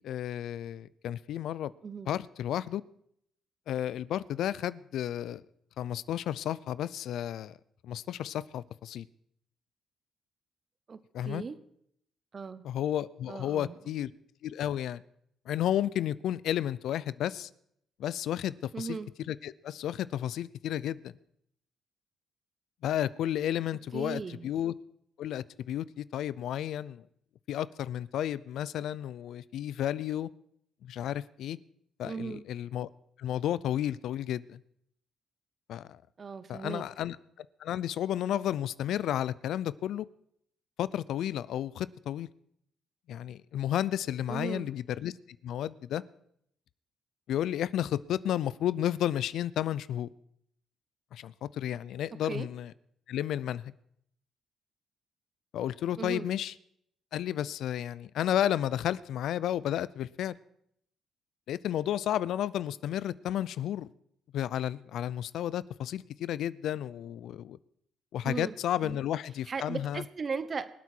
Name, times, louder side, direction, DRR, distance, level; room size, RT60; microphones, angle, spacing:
voice 1, 0.0-1.7 2.1-2.8 3.7-5.4 5.8-7.6 7.8-9.1 11.1-11.4 12.6-14.1 14.4-15.0 15.5-17.5 18.0-19.0 19.3-21.1 22.8-24.7 25.2-27.0 27.5-30.3 30.8-31.6 32.0-32.9 33.2-34.6 35.7-36.0 36.5-40.1 40.8-42.3 43.1-45.1 45.4-46.0 47.3-50.1 51.1-52.7 53.1-53.7 55.5-56.5 57.1-60.4 61.5-63.9 64.3-67.6 68.1-70.0, left 11 dB, 75° left, 19 dB, 0.5 m, -32 dB
voice 2, 1.8-2.1 10.9-11.6 12.3-12.6 13.3-13.8 18.7-19.1 23.9-24.5 32.0-32.4 36.2-36.9 44.3-44.7 52.3-52.5 56.0-56.3 68.2-68.5 68.8-69.0 69.5-70.7, right 5 dB, 40° right, 13 dB, 1.0 m, -37 dB
23.5 x 8.2 x 4.5 m, 0.71 s
cardioid pair, 90°, 0 cm